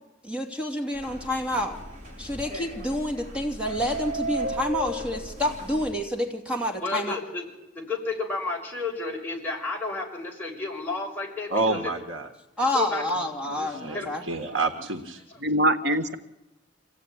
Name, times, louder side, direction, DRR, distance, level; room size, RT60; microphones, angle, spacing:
voice 1, 0.2-1.8 2.2-7.2 12.6-14.2, left 1 dB, 5° right, 2 dB, 2.6 m, -28 dB
sound 1, 0.9-5.9, right 1 dB, 40° right, 5.3 m, -35 dB
voice 2, 6.8-7.4 7.7-11.9 12.6-13.0 13.9-14.1 15.3-15.4 15.8-16.0, left 3 dB, 10° left, -2 dB, 5.8 m, -32 dB
voice 3, 11.5-12.3 13.6-15.2, right 3 dB, 85° right, 5 dB, 1.8 m, -29 dB
voice 4, 13.5-13.9 14.5-14.6 15.4-16.2, right 1 dB, 55° right, 10 dB, 1.3 m, -25 dB
25.5 x 17.0 x 9.9 m, 0.96 s
head